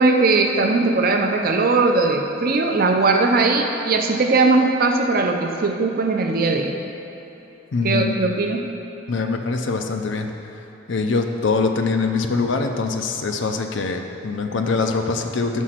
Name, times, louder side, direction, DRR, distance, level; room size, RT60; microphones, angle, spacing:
voice 1, 0.0-6.8 7.8-8.7, right 3 dB, 45° right, 4 dB, 0.5 m, -19 dB
voice 2, 7.7-8.3 9.1-15.6, left 4 dB, 65° left, 5 dB, 0.5 m, -23 dB
6.3 x 5.0 x 5.7 m, 3.0 s
head